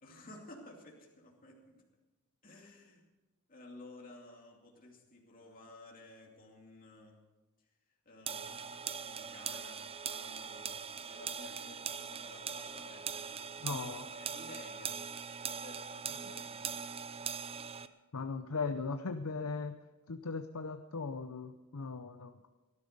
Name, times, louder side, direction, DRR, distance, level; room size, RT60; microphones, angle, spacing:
voice 1, 0.0-1.8 2.4-3.0 3.5-7.2 8.1-15.0 15.4-16.6, left 2 dB, 40° left, -1 dB, 2.6 m, -54 dB
sound 1, 8.3-17.9, right 7 dB, 25° right, 0.6 m, -41 dB
voice 2, 13.6-14.0 18.1-19.7 20.1-22.4, left 4 dB, 75° left, 8 dB, 0.7 m, -38 dB
18.0 x 12.0 x 5.2 m, 1.2 s
head